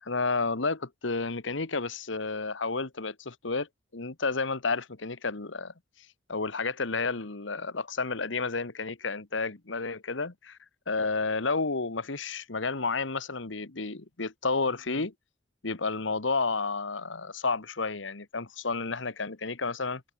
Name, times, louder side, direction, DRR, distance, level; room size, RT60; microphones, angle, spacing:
voice 1, 0.0-3.7 3.9-5.7 6.3-10.6 10.9-15.1 15.6-20.0, left 4 dB, 75° left, 1.5 m, -31 dB
head